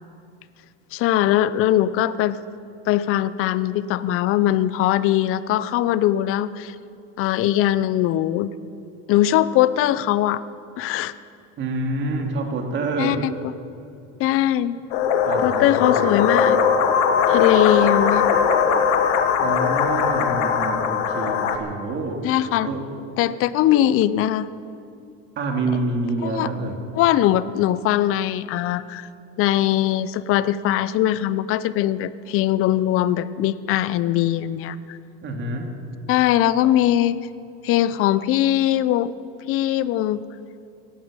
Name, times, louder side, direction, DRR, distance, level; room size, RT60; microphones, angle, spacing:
voice 1, 0.9-2.4 2.9-6.7 7.2-8.5 9.1-10.4 10.8-11.1 13.0-13.3 14.2-14.8 15.4-16.6 17.3-18.3 22.2-22.7 23.2-24.5 26.2-26.5 27.0-29.1 29.4-35.0 36.1-37.2 37.6-39.1 39.5-40.2, left 13 dB, 45° left, 16 dB, 0.6 m, -21 dB
voice 2, 11.6-13.3 15.2-16.0 19.4-22.4 22.6-23.0 25.4-26.8 35.2-35.8, right 3 dB, 40° right, 3 dB, 2.4 m, -27 dB
sound 1, 14.9-21.6, left 6 dB, 80° left, 1.5 m, -20 dB
17.0 x 11.5 x 7.4 m, 2.5 s
cardioid pair, 140°, 30 cm